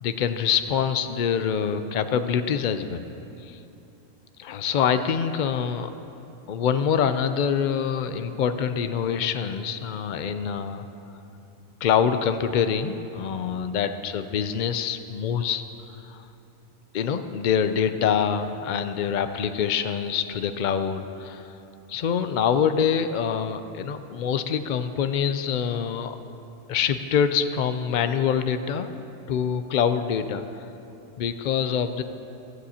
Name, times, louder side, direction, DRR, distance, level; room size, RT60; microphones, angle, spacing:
voice 1, 0.0-3.0 3.4-3.6 4.4-5.9 6.5-10.8 11.8-15.6 16.1-16.2 16.9-21.5 21.9-26.2 26.7-28.9 29.3-30.6 31.2-32.0, left 7 dB, 85° left, 9 dB, 0.4 m, -25 dB
15.5 x 14.5 x 2.8 m, 2.9 s
omnidirectional pair, 1.4 m